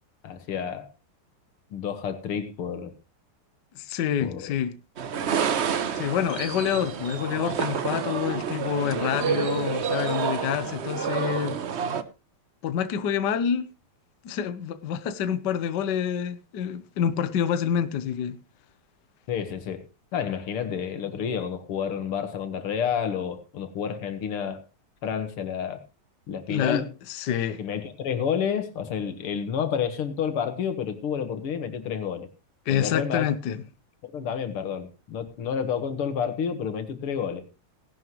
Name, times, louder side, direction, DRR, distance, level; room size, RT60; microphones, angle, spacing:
voice 1, 0.2-0.9 1.7-2.9 4.2-4.6 19.3-19.8 20.1-24.6 25.0-25.8 26.3-26.9 27.6-32.3 32.7-33.3 34.1-37.4, left 7 dB, 90° left, 2.5 m, -30 dB
voice 2, 3.7-4.7 5.9-11.6 12.6-13.7 14.2-18.4 26.5-27.6 32.7-33.6, left 9 dB, 60° left, 1.4 m, -27 dB
sound 1, 5.0-12.0, right 7 dB, 85° right, 0.5 m, -29 dB
17.5 x 11.0 x 3.1 m
omnidirectional pair, 2.4 m